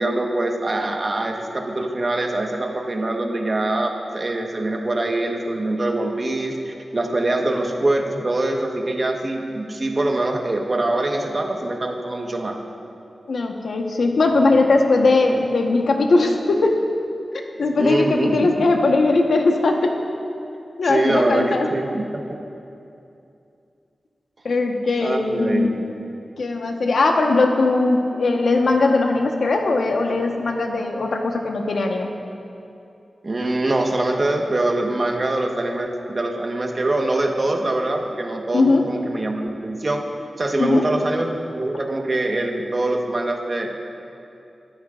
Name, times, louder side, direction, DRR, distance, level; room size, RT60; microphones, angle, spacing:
voice 1, 0.0-12.6 17.8-18.5 20.8-22.1 25.0-25.9 33.2-38.6 38.9-40.0 40.4-43.7, right 2 dB, 40° right, 2 dB, 1.3 m, -23 dB
voice 2, 13.3-16.8 17.3-20.0 20.8-21.7 24.4-25.8 26.4-32.1 38.5-38.9 40.6-40.9, left 3 dB, 80° left, 2 dB, 1.1 m, -19 dB
22.0 x 12.5 x 2.5 m, 2.7 s
wide cardioid pair, 100°, 0 cm